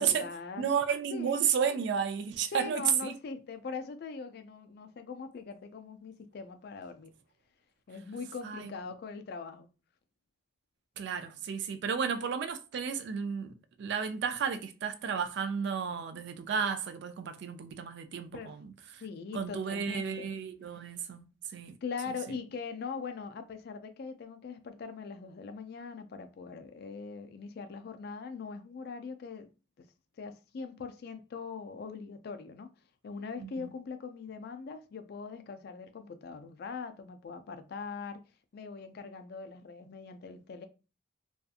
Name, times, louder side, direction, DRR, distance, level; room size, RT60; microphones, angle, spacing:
voice 1, 0.0-0.7 1.1-1.4 2.5-7.1 7.9-9.7 18.3-18.6 19.0-20.3 21.8-29.5 29.8-29.9 30.2-32.7 33.0-38.2 38.5-40.7, left 5 dB, 50° left, 0.3 m, -41 dB
voice 2, 0.6-3.1 8.4-8.7 11.0-18.7 19.3-21.2 21.5-21.8 33.4-33.7, right 7 dB, 55° right, 0.3 m, -32 dB
2.6 x 2.3 x 2.4 m
head